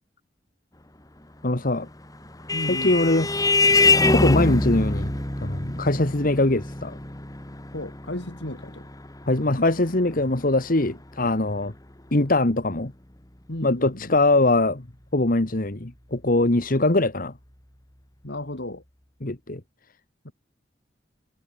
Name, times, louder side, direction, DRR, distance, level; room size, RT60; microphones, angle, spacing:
voice 1, 1.4-1.9 2.7-3.3 4.1-5.1 5.4-7.0 9.3-11.7 12.1-12.9 13.6-14.9 15.1-17.3 19.2-19.6, left 2 dB, 50° left, 1.8 m, -22 dB
Vehicle horn car horn honking, 1.9-10.9, left 3 dB, 20° left, 2.6 m, -24 dB
voice 2, 2.5-2.9 7.7-8.9 13.5-14.2 18.2-18.8 20.2-20.3, left 1 dB, 70° left, 2.9 m, -34 dB
head